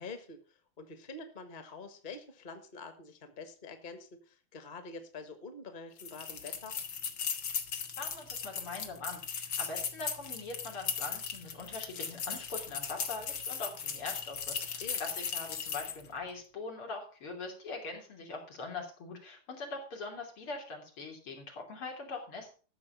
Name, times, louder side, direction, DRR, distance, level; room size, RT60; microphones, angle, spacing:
voice 1, 0.0-6.8 14.6-15.0, left 4 dB, 25° left, 8 dB, 1.4 m, -46 dB
sound 1, 6.0-16.1, left 6 dB, 65° left, 2.1 m, -37 dB
voice 2, 8.0-22.5, left 3 dB, 80° left, 1 dB, 4.0 m, -42 dB
13.5 x 6.9 x 5.7 m, 0.39 s
omnidirectional pair, 2.4 m